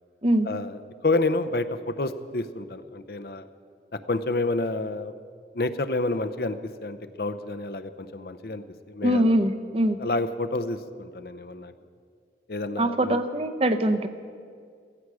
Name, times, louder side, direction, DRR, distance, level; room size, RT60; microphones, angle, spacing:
voice 1, 0.4-3.5 4.1-5.1 5.5-9.4 10.0-11.7 12.5-13.2, left 2 dB, 60° left, 11 dB, 0.7 m, -29 dB
voice 2, 9.0-10.0 12.8-14.1, right 1 dB, 35° right, 10 dB, 0.7 m, -23 dB
16.0 x 15.5 x 4.9 m, 2.2 s
head